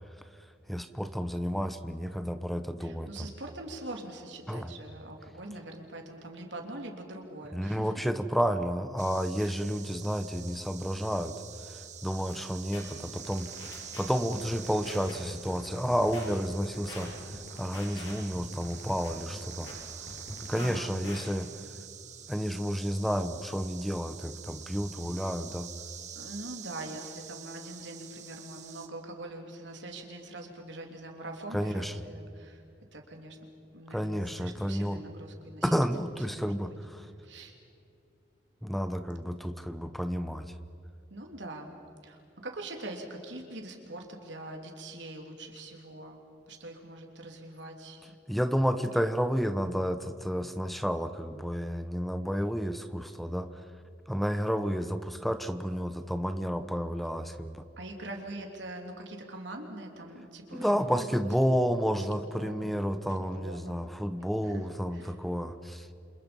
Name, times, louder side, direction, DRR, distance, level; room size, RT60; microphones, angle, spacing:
voice 1, 0.7-3.3 4.5-4.7 7.5-13.5 14.0-19.7 20.1-21.5 22.3-25.7 31.5-31.9 33.9-35.0 35.6-37.1 38.6-40.5 48.3-53.5 54.1-57.7 60.5-65.9, equal, ahead, 10 dB, 0.9 m, -31 dB
voice 2, 2.8-7.9 9.4-9.6 20.6-20.9 26.1-32.6 32.9-33.4 33.7-36.8 37.2-37.5 41.1-41.7 42.0-48.1 49.0-49.1 57.8-61.2 61.9-62.7 63.1-63.8 64.2-64.6 64.9-65.1, right 1 dB, 75° right, 2 dB, 3.3 m, -43 dB
sound 1, 9.0-28.9, right 9 dB, 40° right, 1.5 m, -46 dB
sound 2, 12.3-12.4 12.7-12.8 13.2-14.0 14.3-15.1 15.5-16.3 16.6-17.0 17.5-18.1 18.5-19.7 20.1-20.8 21.0-21.2, left 2 dB, 90° left, 7.5 m, -44 dB
sound 3, 14.3-20.8, equal, 35° left, 5.3 m, -47 dB
29.0 x 27.0 x 5.4 m, 2.5 s
head